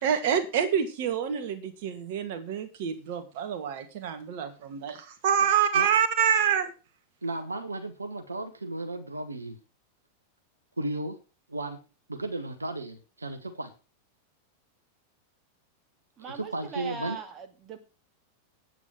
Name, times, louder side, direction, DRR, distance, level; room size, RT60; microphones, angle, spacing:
voice 1, 0.0-6.7, right 8 dB, 50° right, 8 dB, 2.4 m, -27 dB
voice 2, 7.2-9.6 10.8-11.2 11.5-11.8 12.1-13.7 16.2-17.2, right 2 dB, 80° right, 7 dB, 1.5 m, -34 dB
voice 3, 16.2-17.8, right 5 dB, 30° right, 7 dB, 2.3 m, -39 dB
9.7 x 9.2 x 6.3 m, 0.33 s
figure-of-eight pair, 90°, 0 cm